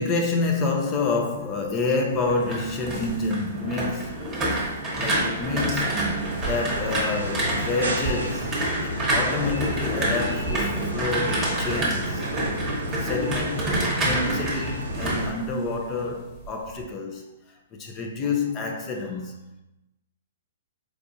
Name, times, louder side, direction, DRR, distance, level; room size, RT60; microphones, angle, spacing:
voice 1, 0.0-4.2 4.9-6.1 6.5-8.6 8.8-12.3 13.0-17.3 17.7-19.3, left 3 dB, 25° left, 0.6 m, -28 dB
sound 1, 2.1-16.1 16.4-16.8, right 1 dB, 20° right, 1.1 m, -28 dB
sound 2, 6.1-15.3, right 1 dB, 80° right, 0.7 m, -33 dB
4.6 x 2.4 x 2.7 m
hypercardioid pair, 125°, 0 cm